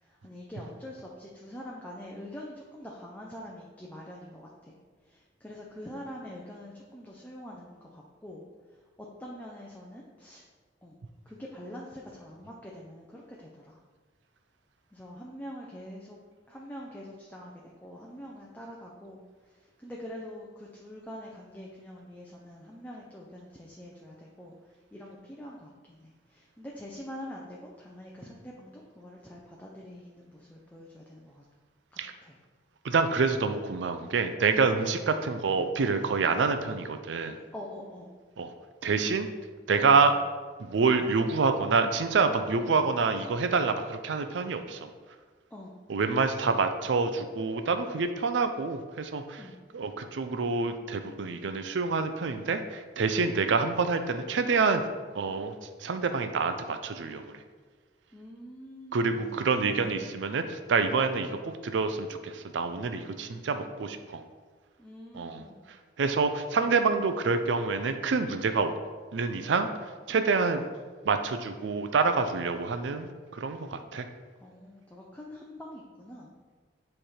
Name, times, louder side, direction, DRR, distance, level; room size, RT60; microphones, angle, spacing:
voice 1, 0.0-4.7 5.1-8.4 8.7-8.8 9.2-10.4 10.8-11.0 11.3-13.8 14.9-16.2 16.5-19.2 19.5-24.6 24.9-31.4 32.2-32.4 34.9-35.1 37.5-38.1 40.0-40.2 42.7-42.9 45.5-45.7 49.4-49.6 58.1-59.3 59.5-60.1 63.2-63.8 64.8-65.6 70.6-70.7 74.4-76.3, equal, 10° left, -3 dB, 0.6 m, -45 dB
voice 2, 32.8-37.3 38.4-38.5 38.8-39.3 39.7-40.1 40.6-44.9 45.9-49.4 49.7-54.8 55.1-55.5 55.8-57.3 58.9-64.2 65.1-65.4 66.0-68.7 69.1-69.7 70.1-70.6 71.1-74.0, right 4 dB, 80° right, 8 dB, 0.5 m, -27 dB
7.7 x 3.3 x 4.3 m, 1.4 s
head